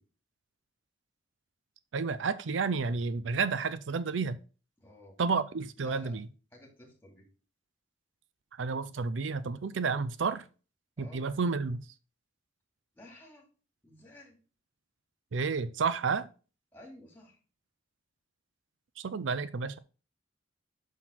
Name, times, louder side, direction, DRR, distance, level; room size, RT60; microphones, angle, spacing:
voice 1, 1.9-4.4 5.2-6.3 8.6-10.5 11.0-11.8 15.3-16.3 19.0-19.8, right 4 dB, 85° right, 0.5 m, -31 dB
voice 2, 4.8-5.2 5.8-6.1 6.5-7.3 11.0-11.2 12.9-13.4 13.8-14.4 16.7-17.4, left 1 dB, 10° left, 2.6 m, -52 dB
6.1 x 6.0 x 4.4 m
head